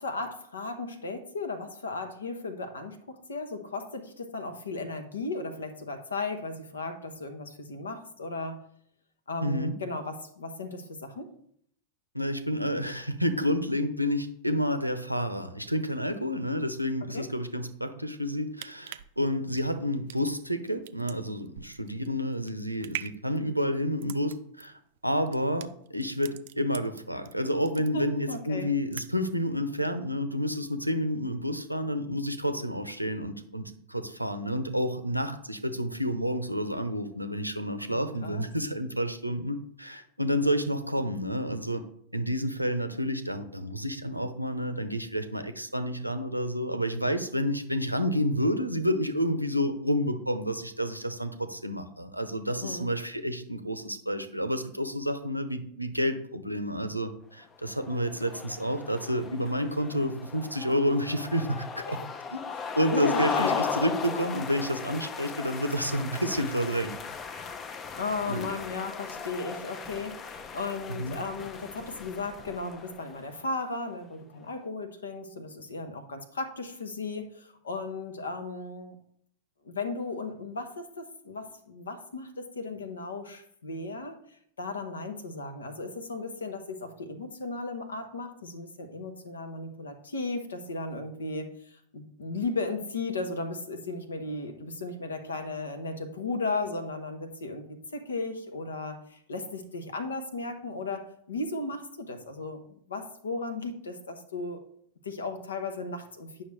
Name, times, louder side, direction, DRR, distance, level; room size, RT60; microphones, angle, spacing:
voice 1, 0.0-8.6 9.3-11.3 17.1-17.3 27.9-28.7 37.9-38.5 52.6-52.9 62.9-63.6 67.9-79.0 79.6-84.2 84.6-102.6 102.9-104.6 105.0-106.4, left 3 dB, 70° left, 7 dB, 1.0 m, -35 dB
voice 2, 9.4-9.7 12.1-24.7 25.0-41.8 42.1-62.0 62.3-62.4 62.8-67.0 67.3-67.6 68.3-68.5 71.0-71.2, equal, 90° right, 9 dB, 0.7 m, -30 dB
sound 1, 18.3-27.3 27.6-28.4 28.7-29.4 29.7-29.8, right 12 dB, 55° right, 0.4 m, -43 dB
sound 2, 57.6-73.3, left 5 dB, 25° left, 0.6 m, -37 dB
9.1 x 5.7 x 3.3 m, 0.67 s
figure-of-eight pair, 90°, 0 cm